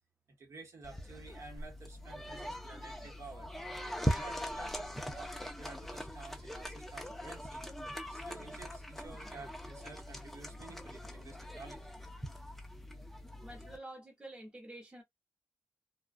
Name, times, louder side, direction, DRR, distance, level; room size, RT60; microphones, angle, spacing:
voice 1, 0.4-3.5 4.0-7.6 8.1-11.9, right 3 dB, 50° right, 1.0 m, -52 dB
sound 1, 0.8-13.8, equal, 5° left, 0.4 m, -41 dB
voice 2, 13.4-15.0, right 1 dB, 15° right, 0.9 m, -48 dB
2.3 x 2.3 x 2.4 m
wide cardioid pair, 155°, 6 cm